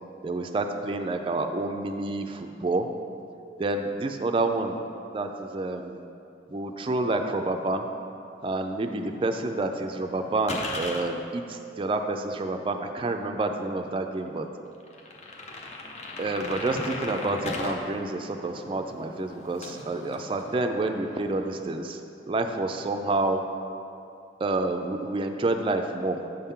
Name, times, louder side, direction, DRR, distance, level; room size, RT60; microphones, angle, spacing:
voice 1, 0.2-2.9 3.6-4.8 5.1-6.0 6.5-7.9 8.4-14.5 16.2-22.0 22.3-23.4 24.4-26.2, right 2 dB, 30° right, 5 dB, 0.3 m, -28 dB
sound 1, 9.1-11.0 12.7-12.8 13.2-13.3 13.9-14.0 14.3-14.4 14.8-17.8 18.1-21.9 22.2-23.3, left 2 dB, 40° left, 0.7 m, -39 dB
7.8 x 3.6 x 5.6 m, 2.6 s
head